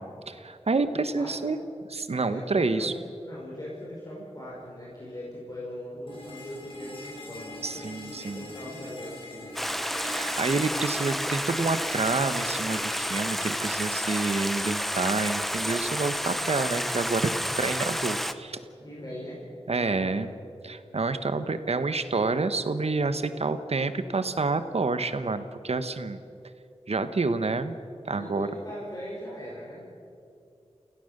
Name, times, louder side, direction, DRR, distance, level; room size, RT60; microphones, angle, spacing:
voice 1, 0.0-1.6 1.9-2.9 7.6-8.5 10.0-18.6 19.7-20.3 20.6-26.2 26.9-27.8 28.0-28.5, right 3 dB, 70° right, 10 dB, 1.2 m, -28 dB
voice 2, 0.9-1.5 2.1-3.0 3.2-7.9 8.3-9.8 18.8-19.4 19.8-20.2 28.0-29.8, equal, 35° left, -5 dB, 5.3 m, -40 dB
sound 1, 6.1-14.0, left 1 dB, 55° left, 5.6 m, -43 dB
Stream, 9.5-18.3, equal, ahead, 0.9 m, -30 dB
28.5 x 17.0 x 6.7 m, 2.6 s
wide cardioid pair, 80°, 11 cm